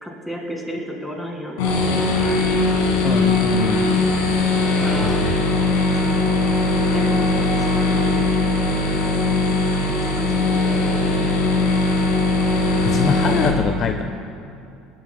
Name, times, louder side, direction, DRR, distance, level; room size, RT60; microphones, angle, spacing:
voice 1, 0.0-2.4 4.6-5.3 5.9-6.4 6.9-8.3 9.4-11.7, equal, 5° left, 0 dB, 1.9 m, -33 dB
sound 1, 1.6-13.5, left 2 dB, 85° left, 1.6 m, -19 dB
voice 2, 3.0-3.8 5.0-5.4 12.8-14.0, left 6 dB, 45° left, 6 dB, 0.4 m, -24 dB
17.0 x 7.3 x 2.2 m, 2.7 s
supercardioid pair, 95°, 0 cm